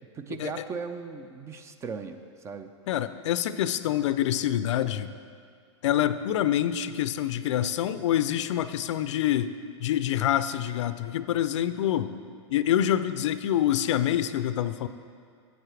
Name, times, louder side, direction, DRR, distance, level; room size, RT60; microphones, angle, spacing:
voice 1, 0.1-2.7, right 5 dB, 20° right, 9 dB, 0.4 m, -37 dB
voice 2, 2.9-5.1 5.8-9.5 9.8-12.1 12.5-14.9, left 11 dB, 70° left, 12 dB, 0.4 m, -26 dB
11.0 x 8.2 x 3.3 m, 2.1 s
hypercardioid pair, 130°, 16 cm